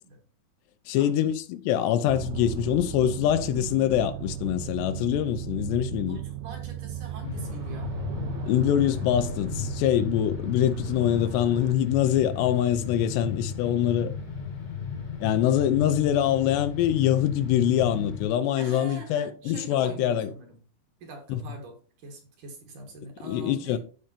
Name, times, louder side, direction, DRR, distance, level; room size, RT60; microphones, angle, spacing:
voice 1, 0.9-6.2 8.5-14.1 15.2-20.3 21.3-21.4 23.3-23.8, left 11 dB, 85° left, 3.0 m, -24 dB
sound 1, 2.1-11.7, right 10 dB, 80° right, 2.6 m, -37 dB
voice 2, 6.1-8.0 18.6-20.6 21.0-23.8, right 3 dB, 55° right, 2.9 m, -43 dB
sound 2, 7.2-18.3, left 6 dB, 40° left, 1.6 m, -34 dB
15.0 x 5.2 x 2.8 m
omnidirectional pair, 4.8 m